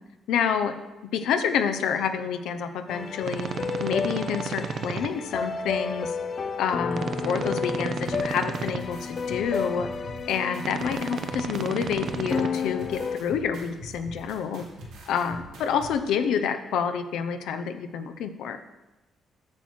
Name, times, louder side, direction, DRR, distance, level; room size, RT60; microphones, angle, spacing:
voice 1, 0.3-0.8 1.1-3.5 3.8-6.1 6.6-9.9 10.3-14.6 15.1-18.6, left 7 dB, 85° left, 8 dB, 0.7 m, -28 dB
sound 1, 2.9-13.2, left 5 dB, 45° left, 0.5 m, -32 dB
sound 2, 3.2-5.1 6.9-8.8 10.6-12.5, right 6 dB, 55° right, 0.6 m, -33 dB
sound 3, 8.0-15.9, equal, 90° right, 2.2 m, -43 dB
8.9 x 4.5 x 7.4 m, 1.1 s
cardioid pair, 90°, 0 cm